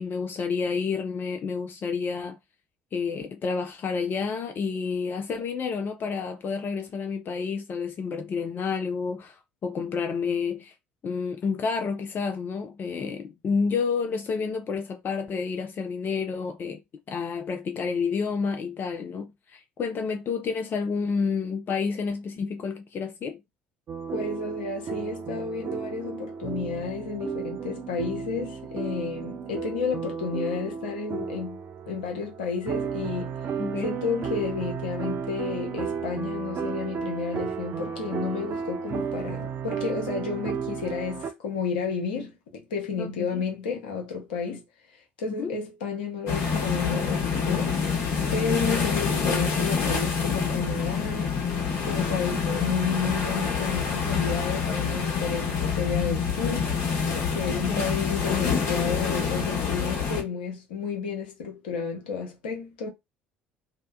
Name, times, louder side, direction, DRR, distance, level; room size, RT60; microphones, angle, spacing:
voice 1, 0.0-2.4 2.9-10.7 11.0-16.8 17.1-23.4 33.6-33.9 43.0-43.4 45.3-45.5 57.5-57.9, left 5 dB, 40° left, 0.4 m, -30 dB
sound 1, 23.9-41.3, right 6 dB, 45° right, 0.5 m, -33 dB
voice 2, 24.1-31.6 31.9-33.3 33.8-44.6 45.2-47.8 48.3-51.3 51.8-56.7 57.1-62.9, left 5 dB, 75° left, 0.8 m, -31 dB
sound 2, 46.3-60.2, left 6 dB, 55° left, 1.1 m, -27 dB
2.7 x 2.1 x 2.2 m
figure-of-eight pair, 55°, 5 cm